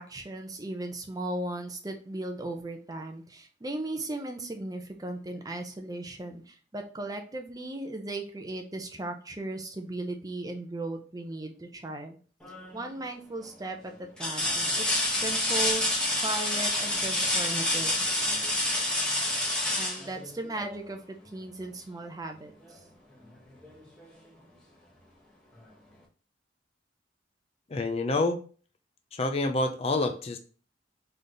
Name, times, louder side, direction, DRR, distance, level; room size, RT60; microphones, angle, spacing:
voice 1, 0.0-12.2 12.7-15.8 16.2-18.1 19.8-22.8, right 2 dB, 20° right, 4 dB, 0.7 m, -37 dB
sound 1, 12.4-12.9 13.4-13.5 14.2-20.8 22.6-22.8 23.2-24.3 25.6-25.7, left 1 dB, 5° left, 1.2 m, -28 dB
voice 2, 27.7-28.4 29.1-30.4, left 2 dB, 35° left, 6 dB, 0.5 m, -27 dB
4.1 x 3.4 x 3.8 m, 0.39 s
head